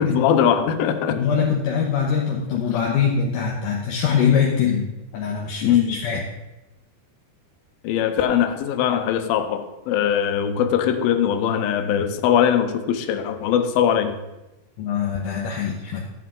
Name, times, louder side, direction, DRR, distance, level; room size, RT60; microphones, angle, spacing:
voice 1, 0.0-1.2 5.6-6.0 7.8-14.2, left 9 dB, 90° left, 8 dB, 2.6 m, -21 dB
voice 2, 1.1-4.9 5.1-6.2 14.8-16.0, left 7 dB, 70° left, -2 dB, 2.5 m, -23 dB
13.0 x 8.4 x 3.7 m, 1.0 s
omnidirectional pair, 4.1 m